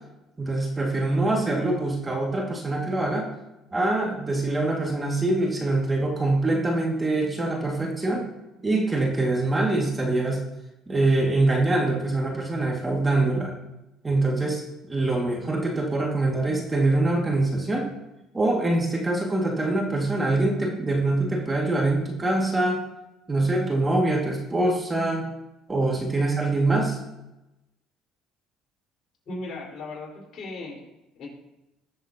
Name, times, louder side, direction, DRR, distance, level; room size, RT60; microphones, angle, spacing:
voice 1, 0.4-3.3 3.7-8.2 8.6-10.4 10.9-13.5 14.0-14.6 14.9-17.9 18.3-22.8 23.3-25.3 25.7-27.0, right 2 dB, 20° right, 0 dB, 2.2 m, -24 dB
voice 2, 29.3-30.8 31.2-31.3, left 2 dB, 50° left, -3 dB, 4.6 m, -36 dB
20.5 x 7.3 x 2.9 m, 0.96 s
supercardioid pair, 85°, 0 cm